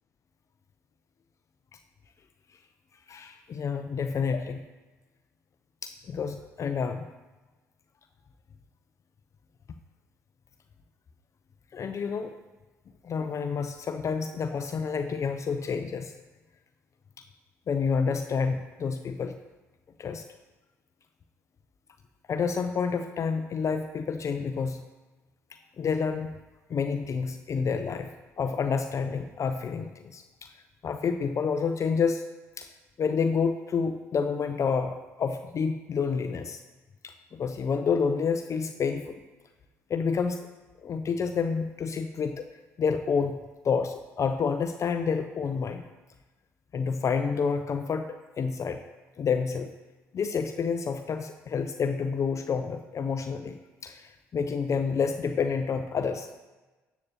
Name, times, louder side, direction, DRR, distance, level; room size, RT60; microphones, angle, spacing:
voice 1, 3.1-4.6 5.8-7.0 11.7-12.3 13.0-16.1 17.7-19.4 20.0-20.2 22.3-24.8 25.5-26.4 26.7-28.1 28.4-30.5 30.8-32.2 32.6-32.7 33.0-36.6 37.0-39.2 39.9-40.4 40.8-42.4 42.8-43.4 43.6-45.8 46.7-48.1 48.4-48.8 49.2-49.7 50.1-56.3, left 5 dB, 45° left, 7 dB, 0.6 m, -29 dB
12.5 x 8.2 x 2.9 m, 1.2 s
hypercardioid pair, 55°, 7 cm